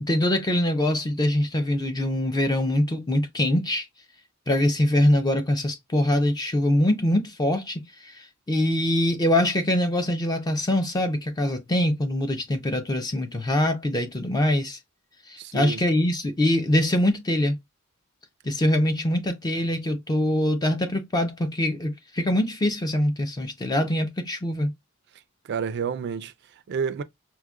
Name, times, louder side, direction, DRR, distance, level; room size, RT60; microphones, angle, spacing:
voice 1, 0.0-3.9 4.5-14.8 15.3-17.6 18.4-24.7, left 1 dB, 20° left, 0.4 m, -23 dB
voice 2, 15.4-15.8 25.1-27.0, right 6 dB, 50° right, 0.3 m, -31 dB
4.6 x 2.1 x 2.3 m
head